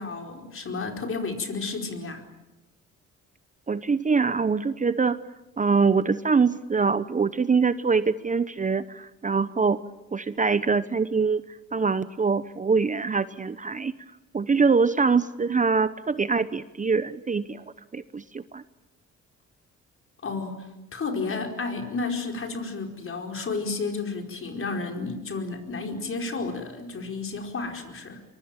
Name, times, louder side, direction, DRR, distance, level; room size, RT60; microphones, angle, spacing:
voice 1, 0.0-2.2 20.2-28.2, left 4 dB, 45° left, 4 dB, 4.7 m, -32 dB
voice 2, 3.7-5.2 5.6-9.8 10.1-11.4 11.7-13.9 14.3-17.6 17.9-18.6, right 5 dB, 25° right, 14 dB, 0.9 m, -24 dB
24.0 x 23.0 x 8.9 m, 0.99 s
cardioid pair, 90°, 30 cm